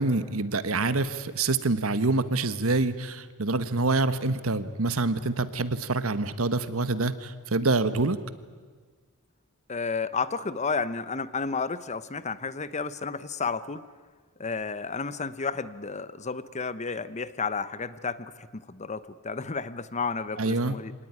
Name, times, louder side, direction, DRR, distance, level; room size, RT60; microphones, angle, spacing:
voice 1, 0.0-8.2 20.4-20.8, right 3 dB, 70° right, 13 dB, 1.3 m, -26 dB
voice 2, 9.7-13.8 14.4-20.9, left 4 dB, 35° left, 15 dB, 0.9 m, -32 dB
25.5 x 19.0 x 9.7 m, 1.5 s
head